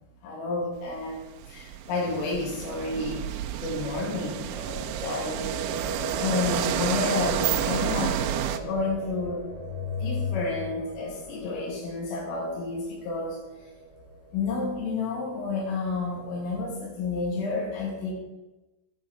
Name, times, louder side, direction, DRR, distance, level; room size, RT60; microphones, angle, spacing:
voice 1, 0.2-3.2 3.6-5.6 6.2-8.2 8.6-9.4 9.7-13.4 14.3-18.1, left 3 dB, 80° left, -3 dB, 5.1 m, -30 dB
sound 1, 0.9-8.6, right 11 dB, 85° right, 2.6 m, -31 dB
sound 2, 4.8-14.6, right 4 dB, 30° right, 4.2 m, -37 dB
12.5 x 10.0 x 4.9 m, 1.1 s
omnidirectional pair, 5.8 m